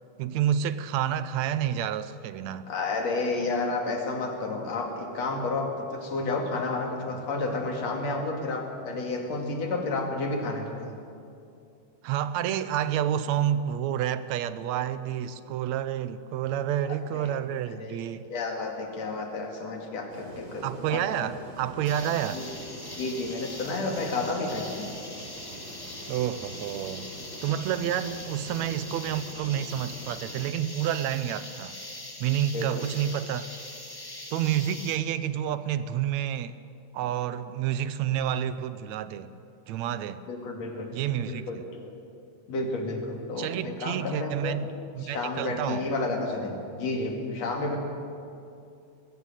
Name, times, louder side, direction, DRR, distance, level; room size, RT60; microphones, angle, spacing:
voice 1, 0.2-2.7 12.0-18.3 20.6-22.4 26.1-27.1 27.4-31.8 32.2-33.5 34.3-36.6 36.9-39.3 39.7-40.2 40.9-41.5 43.4-44.7 45.0-45.9, right 10 dB, 75° right, 13 dB, 2.0 m, -29 dB
voice 2, 2.7-11.0 17.1-17.4 17.8-21.0 22.3-22.5 23.0-24.9 32.5-32.8 40.3-40.9 41.3-41.9 42.5-44.5 45.0-47.8, left 3 dB, 60° left, 2 dB, 3.5 m, -31 dB
sound 1, 20.1-30.3, right 1 dB, 30° right, 4.6 m, -45 dB
sound 2, 21.8-35.0, left 1 dB, 20° left, 0.6 m, -42 dB
20.0 x 15.5 x 9.1 m, 2.6 s
omnidirectional pair, 3.3 m